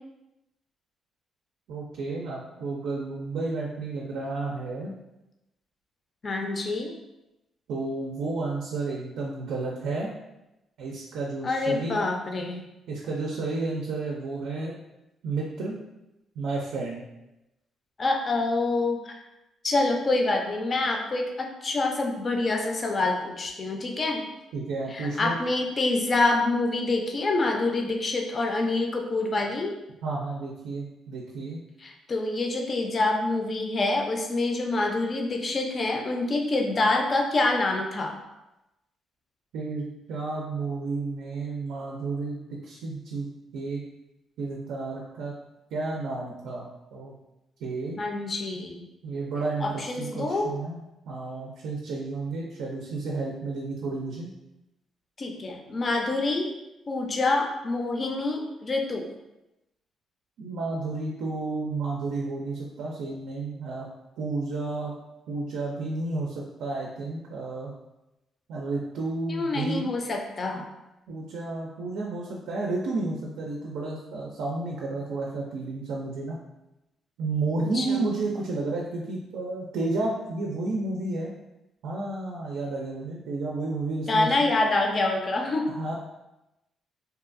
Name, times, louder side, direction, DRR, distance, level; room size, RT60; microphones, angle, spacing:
voice 1, 1.7-4.9 7.7-10.1 10.8-12.0 12.9-14.7 15.2-15.8 16.4-17.0 24.5-25.4 30.0-31.6 39.5-43.3 43.5-43.8 44.4-45.3 45.7-47.1 47.6-48.0 49.0-50.8 51.1-54.3 60.4-63.9 64.2-64.9 65.3-67.7 68.5-69.9 71.1-76.4 77.2-81.3 81.8-84.5 85.7-85.9, right 3 dB, 85° right, -2 dB, 0.4 m, -31 dB
voice 2, 6.2-6.9 11.4-12.6 18.0-19.1 19.6-24.2 24.9-29.7 31.8-38.2 48.0-48.9 49.6-50.5 55.2-56.5 56.9-59.1 69.3-70.7 77.7-78.0 84.1-85.7, left 2 dB, 40° left, 2 dB, 0.4 m, -26 dB
2.8 x 2.2 x 2.5 m, 0.94 s
cardioid pair, 90°, 0 cm